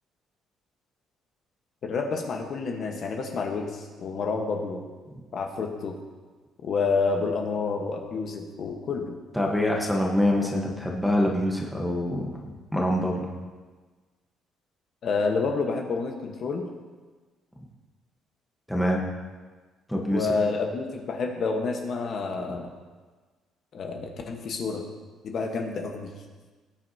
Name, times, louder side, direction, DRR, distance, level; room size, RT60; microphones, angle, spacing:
voice 1, 1.8-4.8 5.3-6.0 6.6-9.1 15.0-16.7 20.1-22.7 23.7-24.8 25.2-26.1, left 4 dB, 40° left, 2 dB, 1.2 m, -29 dB
voice 2, 9.3-13.2 18.7-19.0 19.9-20.3, left 1 dB, ahead, -2 dB, 1.1 m, -25 dB
19.0 x 9.4 x 2.8 m, 1.3 s
cardioid pair, 175°, 0 cm